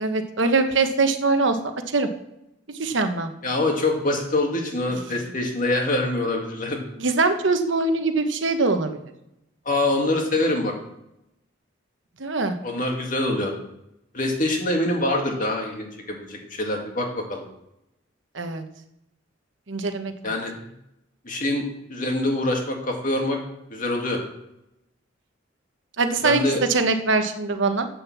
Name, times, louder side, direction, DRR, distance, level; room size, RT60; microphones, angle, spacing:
voice 1, 0.0-1.6 1.9-2.1 2.8-3.3 7.0-9.0 12.2-12.6 18.3-18.6 19.7-20.1 26.0-26.4 26.7-27.9, right 3 dB, 70° right, 7 dB, 1.1 m, -22 dB
voice 2, 3.4-6.8 9.7-10.7 12.6-13.5 14.1-17.4 20.2-20.5 21.2-21.6 21.9-23.4 23.7-24.2 26.2-26.6, left 2 dB, 40° left, 2 dB, 2.1 m, -24 dB
9.0 x 6.8 x 7.2 m, 0.85 s
head